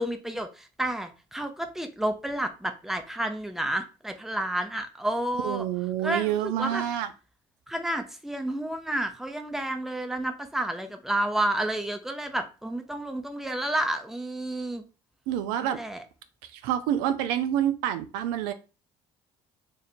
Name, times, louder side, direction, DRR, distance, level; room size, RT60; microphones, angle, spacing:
voice 1, 0.0-5.7 6.0-6.8 7.7-14.8 15.6-16.0, right 1 dB, ahead, 6 dB, 0.6 m, -30 dB
voice 2, 5.4-7.1 15.3-15.8 16.5-18.5, right 11 dB, 80° right, 9 dB, 0.4 m, -27 dB
2.7 x 2.5 x 4.2 m, 0.32 s
hypercardioid pair, 65°, 15 cm